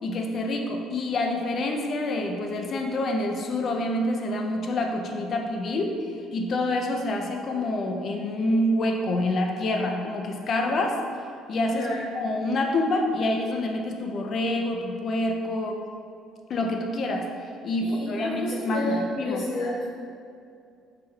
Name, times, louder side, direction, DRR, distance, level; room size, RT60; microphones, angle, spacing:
voice 1, 0.0-6.1 6.3-11.0 11.5-11.9 12.1-15.8 16.5-17.3 17.6-19.4, left 1 dB, 35° left, 2 dB, 0.3 m, -27 dB
voice 2, 11.7-12.0 17.8-19.8, left 1 dB, 55° left, -10 dB, 0.8 m, -30 dB
4.4 x 3.3 x 2.2 m, 2.4 s
cardioid pair, 165°, 0 cm